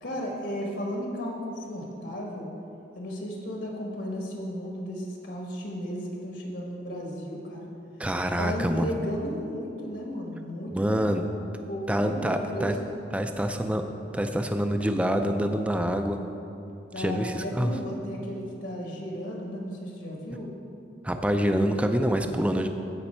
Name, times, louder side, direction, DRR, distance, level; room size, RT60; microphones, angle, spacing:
voice 1, 0.0-2.5 2.9-7.7 8.4-11.3 11.7-13.0 16.9-20.5, equal, 70° left, -1 dB, 1.4 m, -34 dB
voice 2, 8.0-8.9 10.7-11.2 11.9-12.8 13.1-13.8 14.1-16.2 17.0-17.7 21.0-22.7, equal, 5° right, 6 dB, 0.4 m, -26 dB
15.5 x 5.2 x 4.4 m, 2.7 s
head